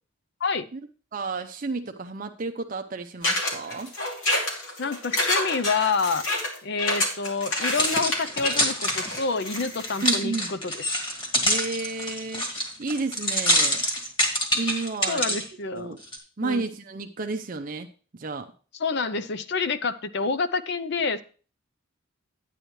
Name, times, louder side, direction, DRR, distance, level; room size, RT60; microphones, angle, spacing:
voice 1, 1.1-3.9 10.0-10.5 11.4-12.5 12.8-13.8 14.5-15.4 15.7-16.0 16.4-18.5, right 3 dB, 40° right, 6 dB, 0.5 m, -31 dB
sound 1, 3.2-10.1, left 1 dB, 75° left, 2.7 m, -28 dB
voice 2, 4.8-6.2 6.6-10.7 15.1-16.0 16.4-16.6 18.8-21.2, left 4 dB, 55° left, 14 dB, 0.6 m, -28 dB
sound 2, 7.4-15.4 16.0-16.2, equal, 25° left, 1.9 m, -26 dB
10.5 x 9.1 x 3.1 m, 0.38 s
head